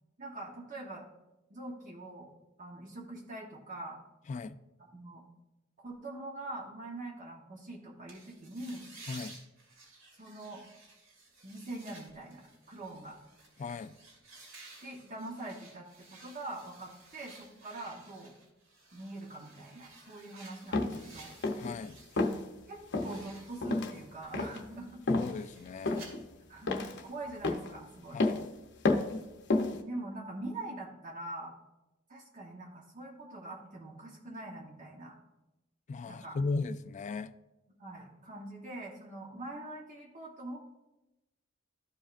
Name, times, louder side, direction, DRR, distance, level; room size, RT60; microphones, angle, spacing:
voice 1, 0.2-1.1 1.5-2.3 2.6-4.0 4.9-5.2 5.8-8.9 10.2-10.6 11.4-13.2 14.8-15.9 16.2-18.3 18.9-21.3 22.7-25.0 26.5-28.2 29.8-31.5 32.1-35.1 36.1-36.4 37.8-40.6, right 2 dB, 40° right, -2 dB, 0.9 m, -43 dB
sound 1, 8.1-22.3 22.6-26.1, right 3 dB, 65° right, 2.5 m, -55 dB
voice 2, 13.6-13.9 21.6-22.0 25.1-26.0 28.1-28.4 35.9-37.3, left 3 dB, 35° left, 14 dB, 0.3 m, -36 dB
sound 2, 20.7-21.0 21.4-21.8 22.2-22.4 22.9-23.2 23.6-23.9 24.3-24.6 25.1-25.3 25.9-26.2 26.7-27.0 27.4-27.7 28.2-28.5 28.8-29.2 29.5-29.8, left 2 dB, 60° left, 0.8 m, -30 dB
13.0 x 4.9 x 2.5 m, 1.0 s
head